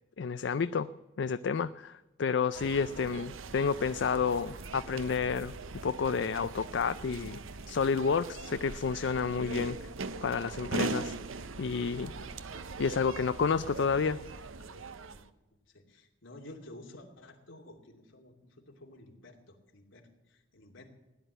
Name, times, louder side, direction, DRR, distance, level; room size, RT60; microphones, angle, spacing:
voice 1, 0.2-0.9 1.2-5.5 5.8-7.4 7.7-9.8 10.2-11.1 11.6-12.1 12.8-14.2, left 5 dB, 60° left, 13 dB, 0.4 m, -30 dB
sound 1, 2.5-15.3, right 3 dB, 90° right, 0.8 m, -41 dB
voice 2, 15.7-20.8, left 1 dB, 75° left, 2 dB, 2.7 m, -53 dB
16.5 x 10.5 x 7.9 m, 1.1 s
head